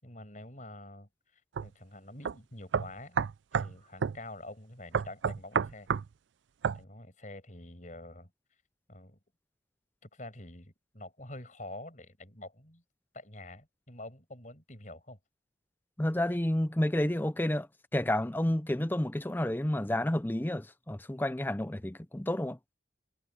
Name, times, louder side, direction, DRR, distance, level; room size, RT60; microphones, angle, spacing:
voice 1, 0.0-3.2 3.6-5.9 6.7-8.3 8.9-9.2 10.0-12.8 13.1-15.2, left 1 dB, 40° left, 6.4 m, -47 dB
sound 1, 1.6-1.7 2.3-2.4 2.7-3.7 4.0-4.2 4.9-6.1 6.6-6.8, right 6 dB, 70° right, 0.4 m, -29 dB
voice 2, 16.0-22.6, left 1 dB, 10° left, 0.5 m, -30 dB
head